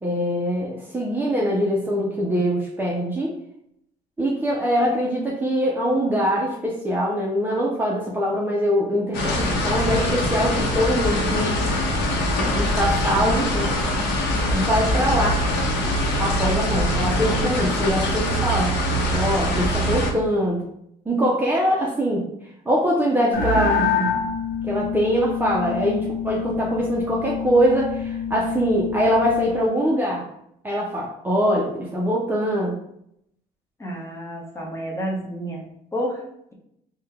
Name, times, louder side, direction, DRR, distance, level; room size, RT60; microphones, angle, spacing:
voice 1, 0.0-3.3 4.2-11.6 12.5-13.8 14.5-15.4 16.2-18.7 19.1-20.7 21.1-22.3 22.7-23.9 24.6-30.2 30.6-32.7, equal, 10° right, -4 dB, 0.6 m, -23 dB
sound 1, 9.1-20.1, left 1 dB, 80° left, 0.8 m, -23 dB
sound 2, 23.3-29.7, left 5 dB, 55° left, 1.1 m, -26 dB
voice 2, 33.8-35.6 35.9-36.2, equal, 15° left, -2 dB, 1.0 m, -29 dB
3.7 x 2.3 x 3.4 m, 0.75 s
cardioid pair, 110°, 17 cm